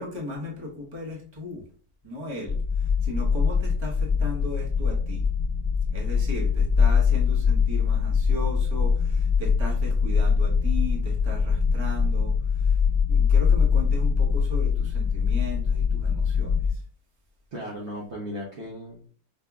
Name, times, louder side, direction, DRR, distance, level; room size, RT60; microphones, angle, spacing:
voice 1, 0.0-1.6 2.0-5.3 5.9-12.8 13.1-16.8, left 1 dB, 20° right, -3 dB, 0.9 m, -37 dB
sound 1, 2.5-16.7, left 6 dB, 30° left, 1.3 m, -23 dB
voice 2, 17.5-19.1, equal, 55° right, -3 dB, 1.0 m, -36 dB
5.0 x 2.6 x 2.3 m, 0.43 s
omnidirectional pair, 1.6 m